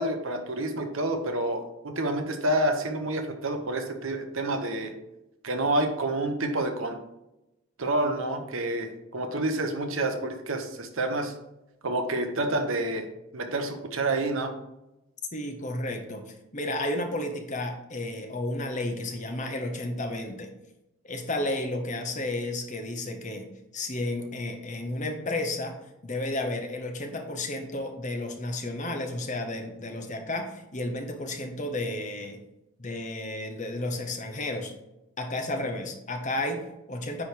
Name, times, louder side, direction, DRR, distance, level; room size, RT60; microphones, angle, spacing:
voice 1, 0.0-4.9 5.4-7.0 7.8-11.3 11.8-13.1 13.3-14.5, right 2 dB, 70° right, 5 dB, 1.0 m, -28 dB
voice 2, 15.3-20.5 21.0-23.5 23.7-25.8 26.0-32.4 32.8-34.7 35.2-37.2, left 1 dB, 35° left, 4 dB, 1.0 m, -32 dB
9.7 x 3.4 x 4.6 m, 0.94 s
head